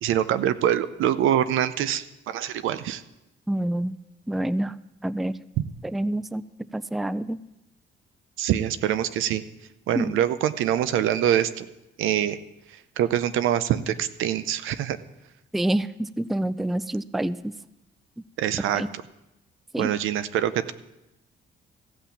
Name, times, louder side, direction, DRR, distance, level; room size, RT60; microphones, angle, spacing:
voice 1, 0.0-3.0 8.4-9.4 9.9-11.7 12.0-12.4 13.0-15.0 18.4-19.0 19.8-20.7, right 11 dB, 85° right, 14 dB, 0.7 m, -24 dB
voice 2, 3.5-3.9 4.3-4.7 5.0-5.3 5.9-6.4 6.7-7.4 9.9-10.2 15.5-17.4 18.7-18.9 19.7-19.9, right 1 dB, ahead, 17 dB, 0.3 m, -27 dB
15.5 x 5.8 x 7.2 m, 0.92 s
cardioid pair, 90°, 20 cm